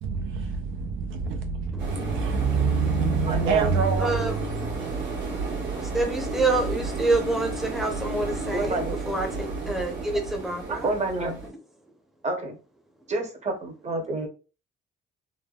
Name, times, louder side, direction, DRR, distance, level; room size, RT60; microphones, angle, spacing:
voice 1, 0.0-5.1, right 5 dB, 85° right, 0.5 m, -26 dB
sound 1, 1.8-11.5, right 3 dB, 70° right, 1.3 m, -32 dB
voice 2, 3.2-3.7 8.5-8.9 10.7-11.4 12.2-12.6 13.1-14.3, right 2 dB, 35° right, 0.8 m, -29 dB
voice 3, 4.0-4.3 5.9-10.9, right 2 dB, ahead, 0.6 m, -27 dB
3.2 x 2.1 x 2.3 m
cardioid pair, 90°, 20 cm